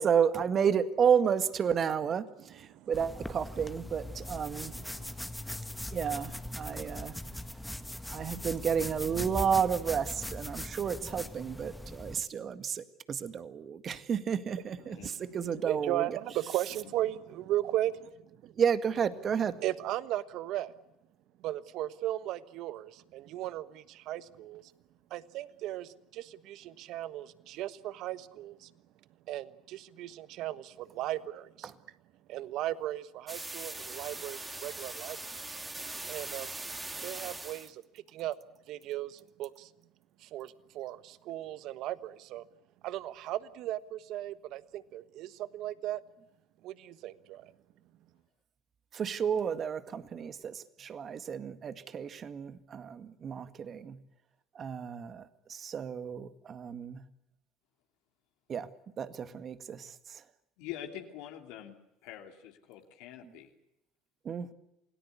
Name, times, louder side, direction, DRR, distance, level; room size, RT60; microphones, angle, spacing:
voice 1, 0.0-4.7 5.9-7.1 8.1-16.1 18.6-19.5 31.6-31.7 48.9-54.0 54.6-57.0 58.5-58.7 59.0-60.2 64.3-64.5, right 7 dB, 45° right, 11 dB, 1.9 m, -31 dB
sound 1, 2.9-12.2, left 1 dB, 5° left, 1.9 m, -40 dB
voice 2, 4.5-5.1 14.9-15.0 15.6-18.5 19.6-20.7 21.4-24.6 25.1-28.7 29.3-31.7 32.3-35.2 35.5-35.6 36.1-36.5 37.0-37.8 38.1-38.4 38.7-39.7 40.2-42.4 42.8-46.0 46.6-47.5, right 14 dB, 65° right, 15 dB, 1.3 m, -36 dB
voice 3, 14.8-15.2 60.6-61.7 62.0-63.5, left 11 dB, 75° left, 3 dB, 2.9 m, -45 dB
sound 2, 33.3-37.7, right 2 dB, 20° right, 3.6 m, -41 dB
28.0 x 18.5 x 8.3 m, 0.89 s
hypercardioid pair, 70°, 0 cm